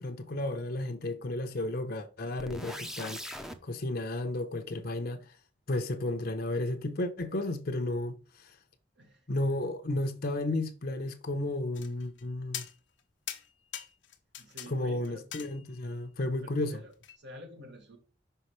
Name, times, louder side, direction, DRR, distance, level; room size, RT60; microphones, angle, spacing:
voice 1, 0.0-3.4 3.6-5.2 5.7-8.2 9.3-12.6 14.7-16.8, left 1 dB, 55° left, 0.8 m, -33 dB
sound 1, 2.4-3.6, equal, 5° right, 0.7 m, -40 dB
voice 2, 9.0-9.3 14.4-15.2 16.4-18.0, equal, 65° right, 1.8 m, -49 dB
sound 2, 11.7-12.2 12.5-13.0 13.3-14.7 15.0-15.9 17.0-17.2, left 10 dB, 85° left, 0.9 m, -42 dB
5.7 x 5.5 x 3.2 m
head